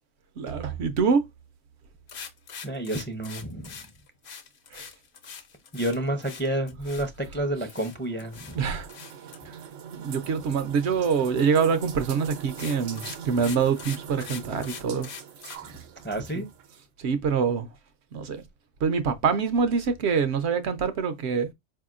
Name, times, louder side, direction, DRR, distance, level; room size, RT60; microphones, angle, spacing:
voice 1, 0.4-1.2 4.7-4.9 8.6-8.9 9.4-9.6 10.0-15.1 16.3-16.4 17.0-17.7 18.1-18.4 18.8-21.5, right 6 dB, 65° right, 0.8 m, -25 dB
sound 1, 2.1-7.4 7.7-8.6 8.9-9.4 11.8-12.0 12.4-15.6, left 6 dB, 60° left, 1.0 m, -42 dB
voice 2, 2.6-3.8 5.7-8.6 16.0-16.5, right 1 dB, 15° left, 0.5 m, -30 dB
sound 2, 7.2-16.8, right 8 dB, 85° right, 1.1 m, -42 dB
4.9 x 2.8 x 2.4 m
omnidirectional pair, 1.3 m